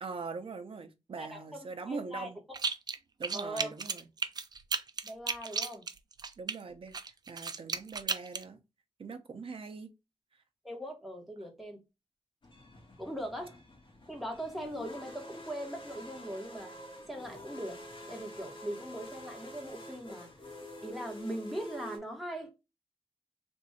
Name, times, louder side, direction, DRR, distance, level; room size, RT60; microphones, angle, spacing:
voice 1, 0.0-2.4 3.2-4.1 6.4-8.6 9.0-9.9 10.3-10.4, right 4 dB, 55° right, 0.8 m, -42 dB
voice 2, 1.2-2.6 3.3-3.7 5.0-5.8 10.6-11.8 13.0-13.6 14.1-16.7 17.1-17.8 18.1-20.3 20.8-22.5, equal, ahead, 1.4 m, -40 dB
sound 1, 2.5-3.0 3.2-6.5 6.9-8.4, right 5 dB, 40° right, 0.4 m, -34 dB
sound 2, 12.4-22.0, equal, 50° left, 1.7 m, -47 dB
3.6 x 2.6 x 4.1 m
wide cardioid pair, 145°, 11 cm